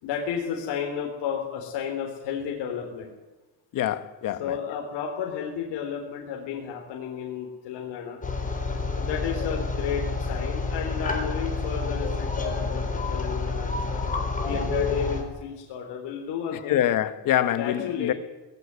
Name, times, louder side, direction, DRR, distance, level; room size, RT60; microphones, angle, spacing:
voice 1, 0.0-3.1 4.4-8.2 8.9-14.0 14.4-16.8 17.6-18.1, left 7 dB, 75° left, 4.0 m, -32 dB
voice 2, 3.7-4.5 16.7-18.1, left 11 dB, 50° left, 1.4 m, -25 dB
sound 1, 8.2-15.2, left 3 dB, 20° left, 3.8 m, -28 dB
20.0 x 15.5 x 9.6 m
cardioid pair, 160°, 42 cm